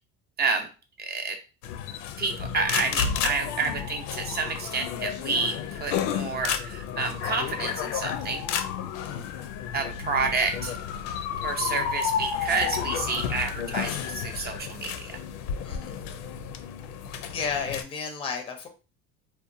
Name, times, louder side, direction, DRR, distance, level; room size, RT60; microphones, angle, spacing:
voice 1, 0.4-0.7 1.0-1.4 2.2-8.5 9.7-10.7 11.4-15.2, right 4 dB, 30° right, 5 dB, 0.6 m, -29 dB
Camera clicks in Israeli Court, 1.6-17.8, left 8 dB, 85° left, 0.5 m, -32 dB
voice 2, 9.0-9.4 15.6-16.0 17.3-18.7, left 5 dB, 15° left, 4 dB, 0.5 m, -33 dB
2.7 x 2.2 x 2.5 m, 0.32 s
cardioid pair, 120°, 33 cm